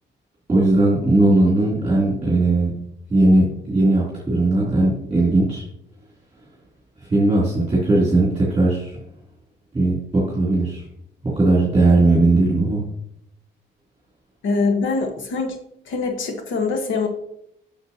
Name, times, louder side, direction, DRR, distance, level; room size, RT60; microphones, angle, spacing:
voice 1, 0.5-2.7 3.1-5.6 7.0-9.0 9.7-10.9 11.2-12.8, right 2 dB, 20° right, -7 dB, 3.1 m, -18 dB
voice 2, 14.4-15.6 15.9-17.1, left 4 dB, 75° left, 5 dB, 1.4 m, -23 dB
8.2 x 6.6 x 2.9 m, 0.76 s
cardioid pair, 90°, 20 cm